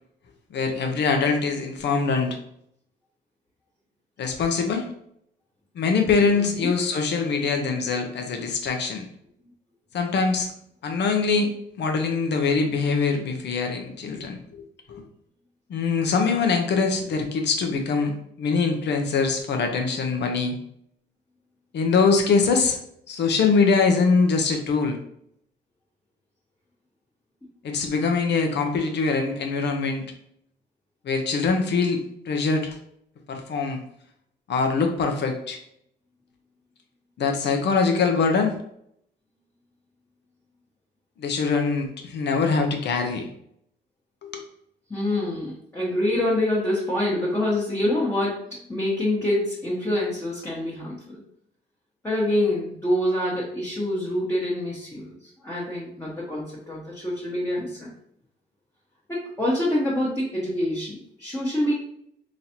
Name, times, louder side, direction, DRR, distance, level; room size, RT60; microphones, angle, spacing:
voice 1, 0.5-2.4 4.2-4.9 5.7-9.0 9.9-10.5 10.8-15.0 15.7-18.1 18.4-20.5 21.7-22.8 23.1-25.0 27.6-30.0 31.0-32.0 32.3-32.8 33.3-33.8 34.5-35.6 37.2-38.6 41.2-43.3 44.2-44.4, left 4 dB, 60° left, 4 dB, 0.8 m, -23 dB
voice 2, 6.3-6.7 44.9-48.3 48.7-51.2 52.0-55.2 55.4-57.9 59.1-61.7, left 1 dB, 15° left, -7 dB, 1.2 m, -26 dB
4.0 x 3.1 x 2.9 m, 0.70 s
cardioid pair, 90°, 20 cm